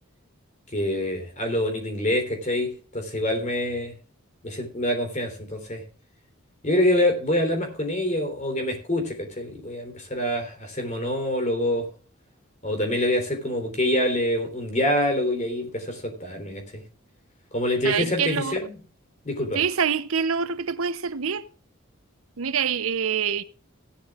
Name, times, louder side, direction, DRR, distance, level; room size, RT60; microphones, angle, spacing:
voice 1, 0.7-3.9 4.4-5.8 6.6-11.9 12.6-16.8 17.5-18.8 19.2-19.6, left 1 dB, 35° left, 3.3 m, -26 dB
voice 2, 17.8-18.6 19.5-21.4 22.4-23.4, right 7 dB, 75° right, 0.7 m, -25 dB
16.5 x 11.5 x 2.4 m
head